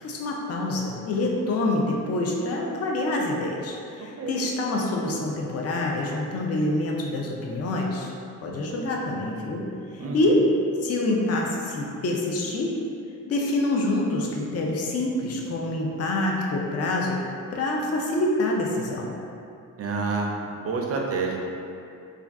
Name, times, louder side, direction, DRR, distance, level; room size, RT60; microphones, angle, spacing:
voice 1, 0.0-8.1 8.4-10.5 10.8-12.8 13.3-19.1, left 2 dB, 45° left, -1 dB, 0.4 m, -26 dB
voice 2, 10.0-10.4 19.8-20.3 20.6-21.5, right 4 dB, 45° right, 0 dB, 0.4 m, -28 dB
2.4 x 2.3 x 3.4 m, 2.6 s
wide cardioid pair, 115°, 34 cm